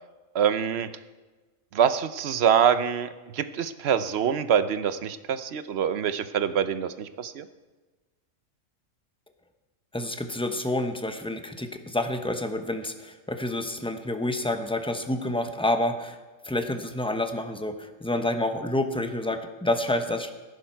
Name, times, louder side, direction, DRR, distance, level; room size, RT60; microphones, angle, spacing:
voice 1, 0.3-0.9 1.7-7.4, right 8 dB, 60° right, 12 dB, 0.9 m, -25 dB
voice 2, 9.9-16.2 16.4-20.3, left 1 dB, 5° left, 7 dB, 0.6 m, -28 dB
17.5 x 10.5 x 4.6 m, 1.3 s
omnidirectional pair, 1.4 m